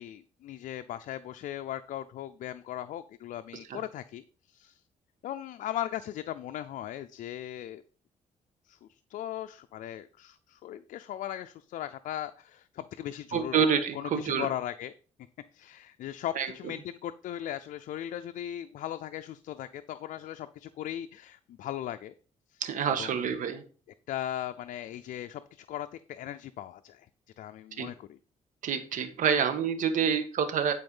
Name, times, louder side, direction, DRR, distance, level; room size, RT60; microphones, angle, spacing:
voice 1, 0.0-4.2 4.5-4.8 5.2-7.8 8.7-8.8 9.1-13.7 13.9-14.9 15.5-22.1 22.5-22.6 22.9-23.3 24.1-27.1 27.4-28.2, left 12 dB, 80° left, 9 dB, 0.5 m, -38 dB
voice 2, 13.3-14.5 16.3-16.5 22.6-23.6 27.8-27.9 28.6-30.7, right 7 dB, 70° right, 9 dB, 1.6 m, -27 dB
11.0 x 4.7 x 5.5 m, 0.38 s
cardioid pair, 105°, 14 cm